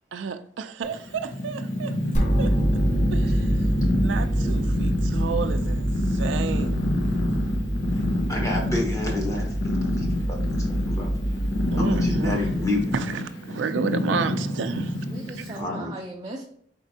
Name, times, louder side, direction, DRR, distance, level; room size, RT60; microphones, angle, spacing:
voice 1, 0.1-2.0 2.4-2.5 3.1-3.6 4.0-6.8 11.7-12.4 12.9-15.0 15.4-15.5, right 5 dB, 85° right, 0.4 m, -31 dB
Purr, 0.8-15.6, left 1 dB, 80° left, 0.9 m, -28 dB
voice 2, 1.8-2.4 15.1-16.4, right 2 dB, 25° right, 0.5 m, -39 dB
sound 1, 2.1-13.1, right 1 dB, 40° left, 0.8 m, -26 dB
voice 3, 4.3-4.7 8.3-11.2 11.8-13.0 15.6-15.9, left 1 dB, 15° left, 1.0 m, -30 dB
4.4 x 4.0 x 2.7 m
head